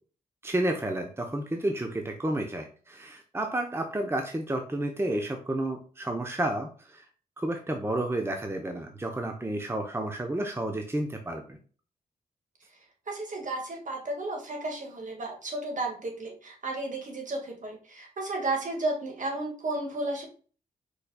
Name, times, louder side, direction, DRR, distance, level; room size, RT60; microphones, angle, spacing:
voice 1, 0.4-7.1 7.4-11.6, right 1 dB, 15° right, 4 dB, 0.8 m, -31 dB
voice 2, 13.1-20.3, right 2 dB, 55° right, 1 dB, 1.9 m, -33 dB
4.9 x 4.5 x 2.3 m, 0.41 s
supercardioid pair, 50°, 16 cm